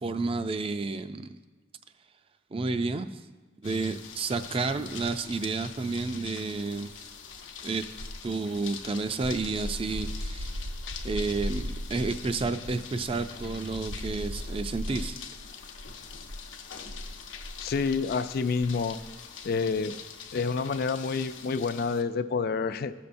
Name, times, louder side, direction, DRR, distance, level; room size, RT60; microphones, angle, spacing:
voice 1, 0.0-1.3 2.5-3.1 3.6-6.9 7.6-7.9 8.2-10.7 11.0-15.2, right 3 dB, 30° right, 10 dB, 0.3 m, -31 dB
sound 1, 3.6-22.0, left 7 dB, 70° left, 0.7 m, -44 dB
sound 2, 4.6-5.4 5.6-19.2 19.4-19.7, equal, 80° right, 0.7 m, -39 dB
voice 2, 17.6-19.0 19.4-19.9 20.3-22.9, left 5 dB, 50° left, 12 dB, 0.3 m, -28 dB
16.5 x 6.8 x 2.6 m, 1.3 s
head